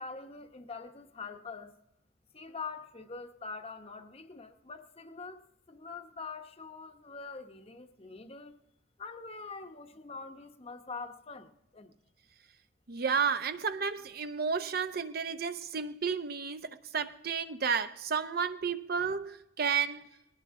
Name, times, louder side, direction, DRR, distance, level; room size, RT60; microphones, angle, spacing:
voice 1, 0.0-1.8 2.3-8.6 9.0-11.9, left 4 dB, 30° left, 0.9 m, -44 dB
voice 2, 12.9-20.1, right 6 dB, 50° right, 0.7 m, -32 dB
20.5 x 18.0 x 3.7 m
head